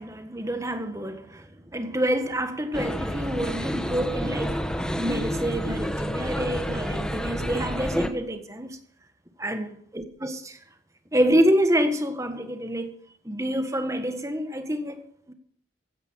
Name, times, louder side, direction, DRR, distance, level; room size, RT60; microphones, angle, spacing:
voice 1, 0.0-4.6 5.0-8.8 9.4-10.6 11.1-12.9 13.2-15.3, equal, 15° right, 1.6 m, -27 dB
sound 1, 2.7-8.1, equal, 5° left, 1.3 m, -29 dB
16.0 x 10.5 x 6.4 m
head